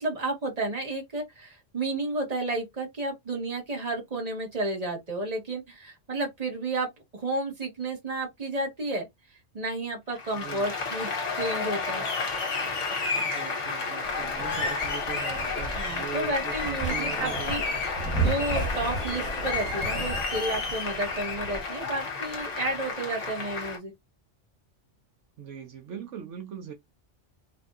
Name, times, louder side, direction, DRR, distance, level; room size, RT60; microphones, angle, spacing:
voice 1, 0.0-11.1 11.3-12.0 15.8-17.6 18.2-23.9, right 2 dB, 35° right, 1.6 m, -32 dB
Applause, 10.2-23.8, left 4 dB, 85° left, 1.5 m, -31 dB
voice 2, 10.3-10.7 13.2-17.8 25.4-26.7, right 7 dB, 80° right, 1.1 m, -41 dB
sound 1, 14.0-21.6, right 3 dB, 5° left, 1.3 m, -34 dB
Sliding door, 16.4-22.0, right 1 dB, 50° right, 2.4 m, -41 dB
4.9 x 2.7 x 2.5 m
omnidirectional pair, 1.2 m